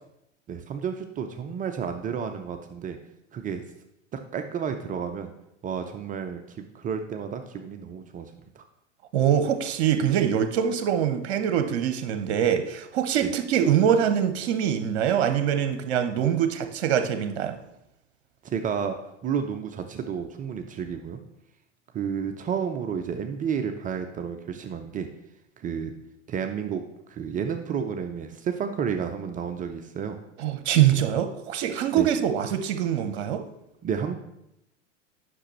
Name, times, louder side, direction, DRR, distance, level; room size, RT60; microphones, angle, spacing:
voice 1, 0.5-3.0 3.3-3.6 4.1-5.3 5.6-8.6 13.2-13.3 18.4-19.0 19.2-21.2 21.9-25.1 25.6-25.9 26.3-26.8 27.1-30.2 31.9-32.1 33.8-34.1, right 7 dB, 20° right, 6 dB, 0.5 m, -31 dB
voice 2, 9.1-17.6 30.4-33.4, right 9 dB, 60° right, 9 dB, 0.8 m, -24 dB
9.9 x 6.0 x 3.1 m, 0.84 s
figure-of-eight pair, 90°, 37 cm